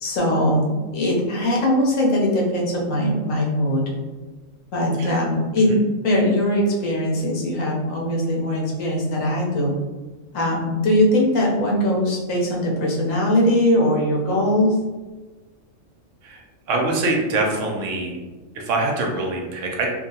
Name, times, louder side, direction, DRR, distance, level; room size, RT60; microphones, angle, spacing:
voice 1, 0.0-3.9 4.7-9.7 10.3-14.7, left 1 dB, 80° left, -2 dB, 1.1 m, -21 dB
voice 2, 16.7-18.2 18.5-19.9, right 2 dB, 75° right, 0 dB, 0.9 m, -24 dB
2.8 x 2.3 x 2.7 m, 1.3 s
omnidirectional pair, 1.4 m